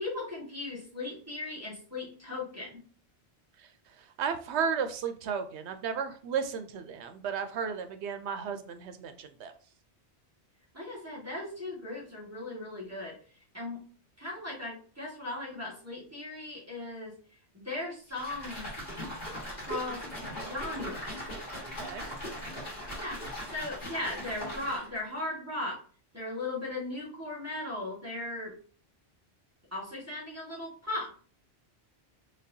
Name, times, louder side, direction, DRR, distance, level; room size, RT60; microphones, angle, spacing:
voice 1, 0.0-2.8 10.7-13.2 13.5-13.8 14.2-17.1 17.5-18.7 19.5-20.0 20.4-21.1 23.0-23.2 23.5-25.8 26.1-28.5 29.7-31.1, left 2 dB, 15° right, -6 dB, 1.5 m, -37 dB
voice 2, 4.0-9.5 21.6-22.0, right 6 dB, 85° right, 9 dB, 0.9 m, -34 dB
sound 1, 18.1-25.0, equal, 40° left, 1.8 m, -39 dB
4.2 x 3.3 x 2.7 m, 0.42 s
omnidirectional pair, 1.1 m